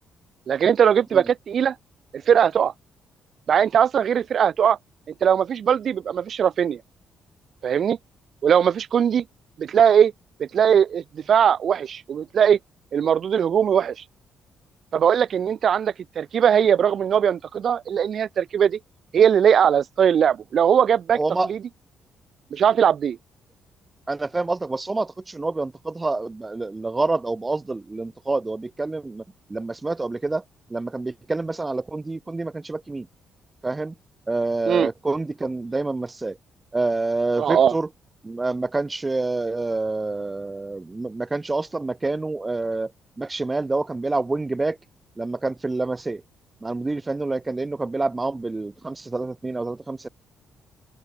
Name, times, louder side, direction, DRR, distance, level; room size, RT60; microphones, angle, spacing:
voice 1, 0.5-1.7 2.3-2.7 3.5-4.8 5.2-6.8 7.6-8.0 8.4-9.2 9.6-10.1 10.5-12.6 12.9-14.0 14.9-18.8 19.1-21.2 21.5-21.6 22.5-23.2 34.7-34.9 37.4-37.7, right 8 dB, 55° right, 1.6 m, -20 dB
voice 2, 21.1-21.5 24.1-29.2 29.5-30.4 30.7-33.1 33.6-33.9 34.3-36.4 36.7-37.9 38.2-42.9 43.2-44.8 45.2-46.2 46.6-50.1, right 3 dB, 20° right, 3.4 m, -27 dB
open air
cardioid pair, 90°, 0 cm